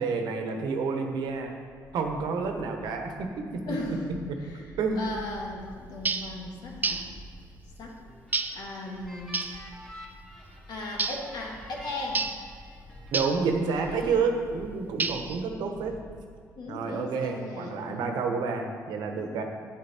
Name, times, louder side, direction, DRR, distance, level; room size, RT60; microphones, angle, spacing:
voice 1, 0.0-1.5 1.9-4.0 4.8-5.1 13.1-16.0 16.7-19.4, right 4 dB, 75° right, 4 dB, 1.1 m, -29 dB
sound 1, 1.8-16.7, equal, 20° left, 2.5 m, -49 dB
voice 2, 3.6-7.0 7.8-8.0 8.5-9.5 10.7-12.2 16.6-18.3 19.1-19.3, left 2 dB, 75° left, -1 dB, 1.8 m, -37 dB
sound 2, 6.0-6.3 6.8-7.1 8.3-8.6 9.3-9.6 11.0-11.3 12.1-12.4 13.1-13.4 15.0-15.4, right 4 dB, 25° right, 0.5 m, -29 dB
sound 3, 8.1-13.1 13.5-14.2, right 1 dB, 5° left, 2.0 m, -49 dB
8.4 x 8.1 x 4.4 m, 2.1 s
cardioid pair, 95°, 7 cm